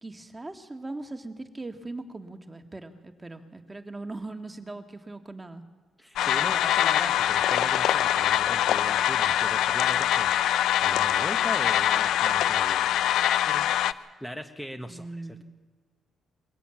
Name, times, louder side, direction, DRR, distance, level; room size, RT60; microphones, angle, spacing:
voice 1, 0.0-5.6 14.9-15.4, right 2 dB, 15° right, 5 dB, 1.9 m, -40 dB
voice 2, 6.0-10.6 10.8-13.0 13.4-15.4, equal, 10° left, 6 dB, 1.5 m, -39 dB
sound 1, 6.2-13.9, left 11 dB, 80° left, 0.6 m, -24 dB
22.0 x 15.0 x 9.1 m, 1.4 s
cardioid pair, 90°, 0 cm